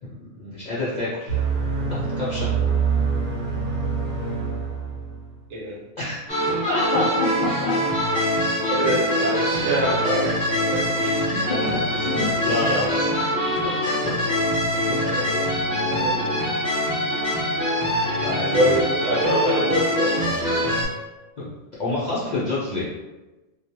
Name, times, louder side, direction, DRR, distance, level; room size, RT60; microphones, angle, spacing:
voice 1, 0.0-1.4 2.2-2.5 6.0-6.2 6.7-7.7 8.1-8.3 11.0-13.1 13.9-14.0 14.9-15.0 18.2-18.8 21.4-21.5 21.8-22.9, left 2 dB, 60° left, -9 dB, 0.4 m, -28 dB
sound 1, 1.3-5.4, right 5 dB, 60° right, 0.9 m, -25 dB
sound 2, 6.3-20.9, equal, 20° left, 0.7 m, -23 dB
voice 2, 8.7-11.0 12.5-12.9 15.0-15.3 15.8-16.6 17.9-20.7, right 1 dB, 80° right, -4 dB, 1.1 m, -26 dB
2.3 x 2.1 x 2.8 m, 1.1 s
omnidirectional pair, 1.3 m